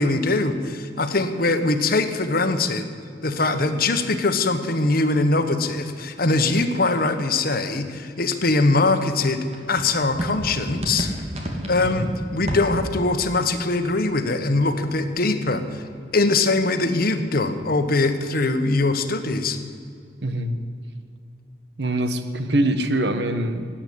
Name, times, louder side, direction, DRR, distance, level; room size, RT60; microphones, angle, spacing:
voice 1, 0.0-2.9 3.2-11.1 11.7-15.8 16.1-19.6, left 2 dB, 55° left, 8 dB, 1.3 m, -22 dB
sound 1, 9.5-15.0 15.3-16.9, equal, 40° right, 2.4 m, -33 dB
voice 2, 20.2-20.5 21.8-23.7, right 1 dB, 70° right, 9 dB, 1.3 m, -24 dB
17.5 x 9.0 x 8.6 m, 2.4 s
head